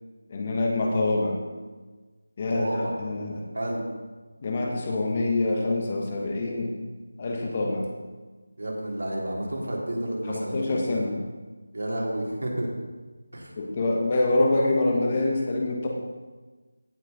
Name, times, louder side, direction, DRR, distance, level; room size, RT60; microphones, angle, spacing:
voice 1, 0.3-1.4 2.4-3.4 4.4-6.7 7.2-7.9 10.3-11.2 13.6-15.9, left 2 dB, 25° left, 1 dB, 1.2 m, -25 dB
voice 2, 2.5-2.9 3.5-3.8 8.6-10.8 11.7-12.7 13.3-13.5, right 1 dB, 70° right, -2 dB, 3.1 m, -30 dB
16.5 x 6.0 x 4.1 m, 1.3 s
figure-of-eight pair, 175°, 0 cm